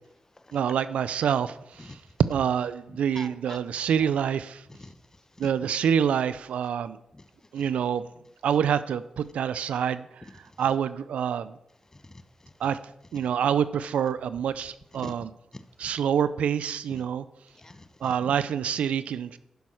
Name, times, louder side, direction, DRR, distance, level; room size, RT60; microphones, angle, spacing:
voice 1, 0.5-2.0 2.3-4.6 5.4-7.0 7.5-8.0 8.4-10.1 10.6-11.5 12.6-12.8 13.1-15.3 15.8-17.2 18.0-19.4, right 8 dB, 85° right, 15 dB, 0.4 m, -26 dB
voice 2, 3.1-4.1 4.7-5.0 5.4-5.5 7.1-7.2 7.6-7.7 11.9-12.5 15.0-15.1 15.5-15.6 16.9-17.0 17.5-18.1, left 2 dB, 25° left, 11 dB, 0.9 m, -45 dB
11.5 x 5.4 x 6.3 m, 0.82 s
cardioid pair, 55°, 2 cm